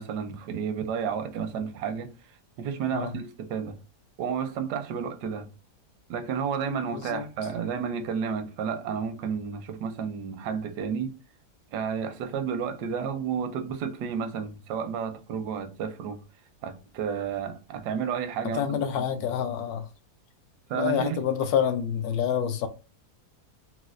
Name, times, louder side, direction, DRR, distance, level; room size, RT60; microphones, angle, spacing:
voice 1, 0.0-2.1 2.6-3.8 4.2-5.5 6.1-11.2 11.7-16.2 16.6-18.8 19.2-19.3 20.7-21.2, right 7 dB, 85° right, 1.2 m, -31 dB
voice 2, 6.9-7.3 18.5-19.9 20.7-22.7, left 8 dB, 75° left, 1.0 m, -27 dB
4.2 x 2.3 x 2.4 m
omnidirectional pair, 1.7 m